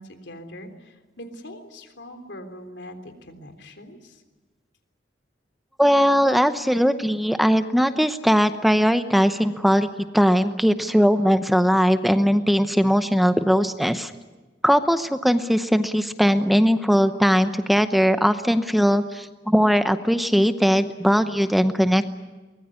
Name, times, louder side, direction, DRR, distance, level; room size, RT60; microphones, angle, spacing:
voice 1, 0.0-4.2, equal, 80° left, 7 dB, 3.5 m, -42 dB
voice 2, 5.8-9.9 10.1-14.1 14.6-22.1, equal, ahead, 9 dB, 0.8 m, -19 dB
23.5 x 20.5 x 9.7 m, 1.3 s
head